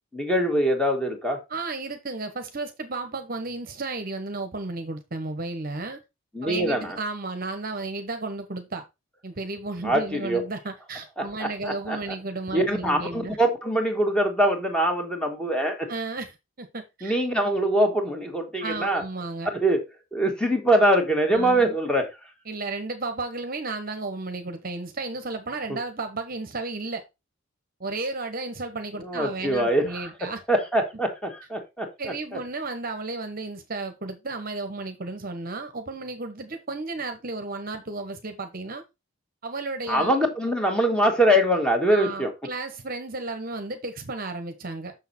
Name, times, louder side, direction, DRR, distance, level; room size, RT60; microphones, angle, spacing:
voice 1, 0.1-1.4 6.3-7.0 9.8-10.4 11.2-12.0 12.5-15.9 17.0-19.0 19.5-19.8 20.1-22.1 25.7-25.8 29.0-31.9 32.3-32.4 39.9-42.3, right 1 dB, 5° left, 1.7 m, -23 dB
voice 2, 1.5-6.0 6.4-8.8 9.2-13.4 15.9-17.2 18.6-19.5 21.3-21.8 22.5-27.0 27.8-30.4 32.0-38.8 39.4-40.2 41.9-44.9, right 3 dB, 40° right, 1.0 m, -33 dB
6.5 x 6.5 x 4.2 m
head